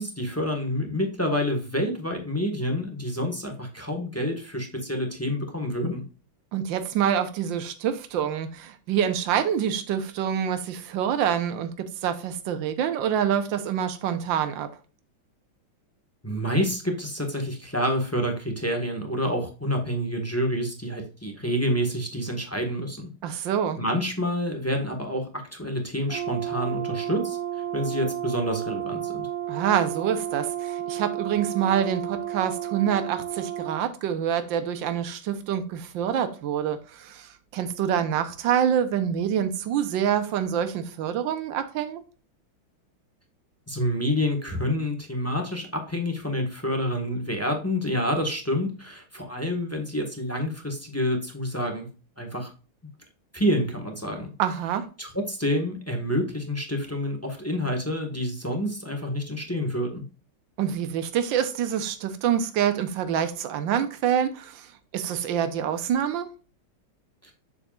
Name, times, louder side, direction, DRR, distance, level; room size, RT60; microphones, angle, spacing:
voice 1, 0.0-6.0 16.2-23.5 23.8-29.3 43.7-51.9 52.2-52.5 53.3-54.3 55.0-60.0 67.2-67.3, equal, 10° left, 1.1 m, -28 dB
voice 2, 6.5-14.7 23.2-23.8 29.5-42.0 54.4-54.8 60.6-66.3, right 9 dB, 70° right, 1.6 m, -26 dB
Brass instrument, 26.1-33.8, right 11 dB, 20° right, 1.4 m, -32 dB
7.3 x 6.6 x 2.4 m
omnidirectional pair, 2.2 m